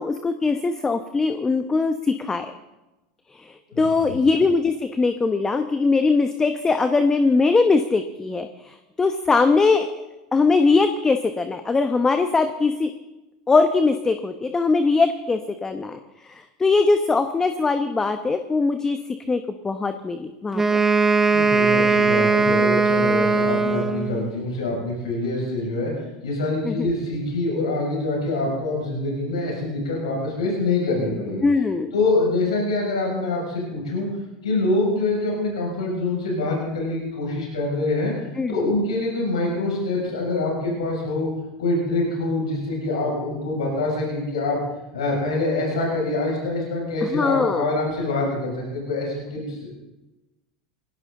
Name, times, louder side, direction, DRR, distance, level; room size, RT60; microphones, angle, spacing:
voice 1, 0.0-2.5 3.3-9.9 10.3-12.9 13.5-19.0 19.3-20.8 26.6-26.9 31.4-31.9 38.4-38.7 47.0-47.7, left 4 dB, 20° left, 8 dB, 1.0 m, -21 dB
voice 2, 3.7-4.2 21.3-25.9 26.2-31.4 31.9-34.1 34.4-38.1 38.5-41.3 41.6-44.6 44.9-49.7, left 2 dB, 80° left, -2 dB, 6.3 m, -25 dB
Wind instrument woodwind instrument, 20.5-24.3, right 4 dB, 10° right, 1.3 m, -19 dB
21.0 x 16.5 x 3.8 m, 1.0 s
hypercardioid pair, 90°, 3 cm